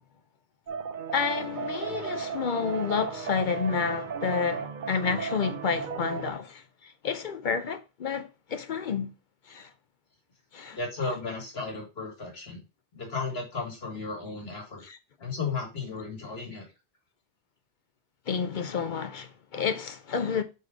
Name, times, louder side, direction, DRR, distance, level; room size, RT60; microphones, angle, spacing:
sound 1, 0.7-6.3, right 6 dB, 55° right, 0.7 m, -35 dB
voice 1, 1.1-9.1 9.5-9.7 10.5-10.8 11.0-11.1 14.8-15.0 18.3-20.4, left 6 dB, 55° left, 0.7 m, -30 dB
voice 2, 10.7-12.6 12.9-14.8 15.2-16.6, left 4 dB, 75° left, 2.1 m, -34 dB
5.0 x 4.2 x 4.7 m
omnidirectional pair, 1.1 m